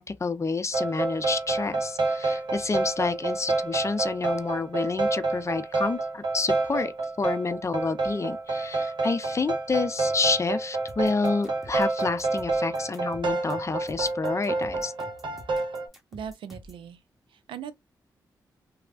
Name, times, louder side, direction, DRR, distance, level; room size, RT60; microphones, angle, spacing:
voice 1, 0.0-6.9 7.2-14.9, left 4 dB, 35° left, 0.5 m, -29 dB
sound 1, 0.7-15.9, right 3 dB, 65° right, 0.8 m, -29 dB
sound 2, 10.9-16.9, equal, ahead, 1.2 m, -48 dB
voice 2, 16.1-17.0 17.3-17.7, right 8 dB, 80° right, 0.4 m, -39 dB
3.2 x 2.0 x 2.4 m
supercardioid pair, 45°, 9 cm